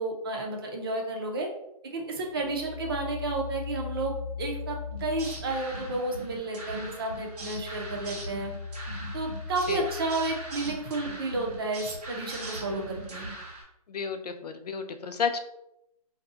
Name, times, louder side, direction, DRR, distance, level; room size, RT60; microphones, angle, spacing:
voice 1, 0.0-1.5 1.8-8.5 9.1-13.3, right 2 dB, 35° right, 0 dB, 0.6 m, -32 dB
sound 1, 2.4-6.3 6.7-11.2, left 5 dB, 20° left, 0.7 m, -40 dB
sound 2, 4.9-13.6, right 2 dB, 70° right, 1.3 m, -40 dB
voice 2, 13.9-15.4, left 6 dB, 80° left, 7 dB, 0.5 m, -31 dB
2.7 x 2.3 x 3.6 m, 0.80 s
hypercardioid pair, 160°, 20 cm